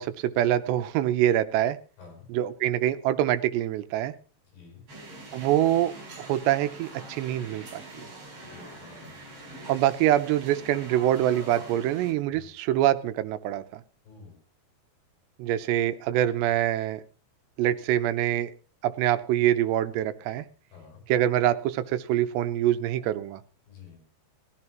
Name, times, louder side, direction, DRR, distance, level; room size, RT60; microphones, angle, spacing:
voice 1, 0.0-1.8 2.3-4.1 5.3-8.1 9.7-13.8 15.4-17.0 17.6-18.5 18.8-20.5 21.1-23.4, right 12 dB, 85° right, 11 dB, 2.9 m, -25 dB
voice 2, 2.0-2.3 4.5-4.8 8.4-9.1 12.3-12.5 14.0-14.4 16.4-16.5 20.7-21.0 23.7-24.0, left 5 dB, 80° left, 1 dB, 7.9 m, -49 dB
sound 1, 4.9-12.1, right 2 dB, 35° right, 5.1 m, -44 dB
20.0 x 13.5 x 3.0 m, 0.36 s
omnidirectional pair, 4.9 m